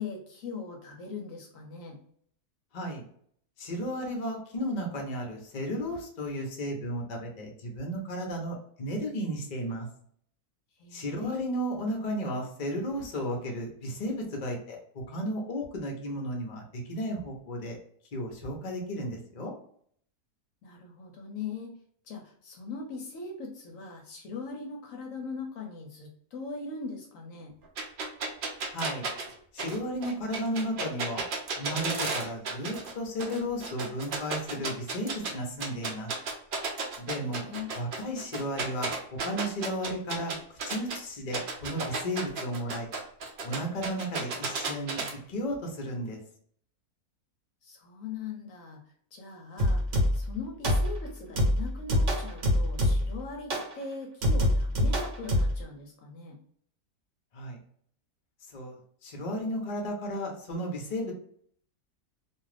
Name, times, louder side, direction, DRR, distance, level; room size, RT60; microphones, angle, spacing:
voice 1, 0.0-2.0 10.8-11.4 20.6-21.8 22.0-27.5 37.1-37.7 47.6-48.8 49.1-56.3, left 4 dB, 70° left, 1 dB, 0.9 m, -40 dB
voice 2, 3.6-9.9 10.9-17.8 18.1-19.5 28.7-29.1 29.5-31.2 31.6-36.1 37.0-37.4 37.7-42.9 43.4-46.2 57.3-57.6 58.5-61.1, equal, 45° left, 1 dB, 0.6 m, -34 dB
sound 1, 27.8-32.9 33.2-35.3 35.6-41.0 41.3-45.1, right 4 dB, 80° right, 0.4 m, -33 dB
sound 2, 49.6-50.3 50.6-51.1 51.4-53.2 53.5-53.7 54.2-55.6, left 1 dB, 60° right, 1.0 m, -25 dB
2.5 x 2.4 x 3.2 m, 0.62 s
omnidirectional pair, 1.6 m